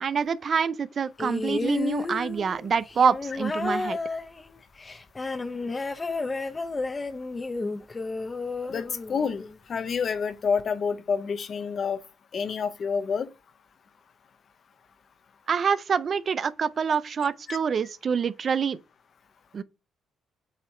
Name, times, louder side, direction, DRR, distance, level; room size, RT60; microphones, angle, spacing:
voice 1, 0.0-4.0 15.5-18.8 19.5-19.6, right 6 dB, 50° right, 0.4 m, -26 dB
sound 1, 1.2-9.6 10.6-10.7, left 3 dB, 25° left, 0.7 m, -31 dB
voice 2, 8.7-12.0 12.3-13.3 17.5-17.6, left 6 dB, 50° left, 0.8 m, -28 dB
7.9 x 2.9 x 4.3 m
cardioid pair, 90°, 0 cm